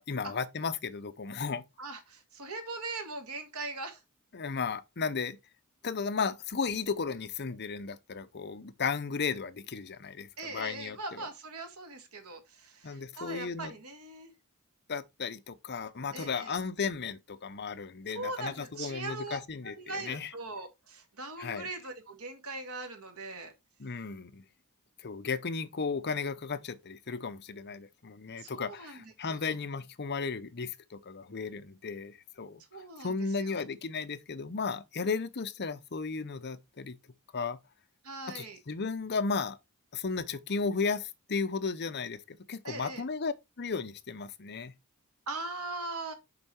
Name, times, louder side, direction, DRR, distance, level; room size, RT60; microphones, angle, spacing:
voice 1, 0.0-1.6 4.3-5.4 5.8-11.3 12.8-13.7 14.9-20.3 21.4-21.7 23.8-24.4 25.0-32.6 33.0-37.0 37.3-37.6 38.3-39.6 39.9-44.7, left 5 dB, 50° left, 0.8 m, -35 dB
voice 2, 1.8-4.0 10.4-14.3 16.1-16.6 18.1-19.4 19.6-23.5 28.4-29.6 32.7-33.6 38.0-38.6 42.6-43.0 45.3-46.1, right 2 dB, 80° right, 2.2 m, -40 dB
6.9 x 5.6 x 4.4 m
head